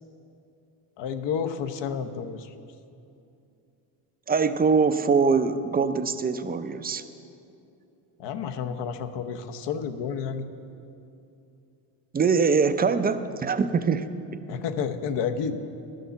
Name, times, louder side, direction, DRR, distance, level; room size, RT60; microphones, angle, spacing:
voice 1, 1.0-2.5 8.2-10.4 14.5-15.6, left 7 dB, 60° left, 8 dB, 0.9 m, -30 dB
voice 2, 4.3-7.0 12.1-14.1, right 5 dB, 20° right, 10 dB, 0.4 m, -23 dB
11.5 x 6.6 x 6.9 m, 2.7 s
supercardioid pair, 85°, 48 cm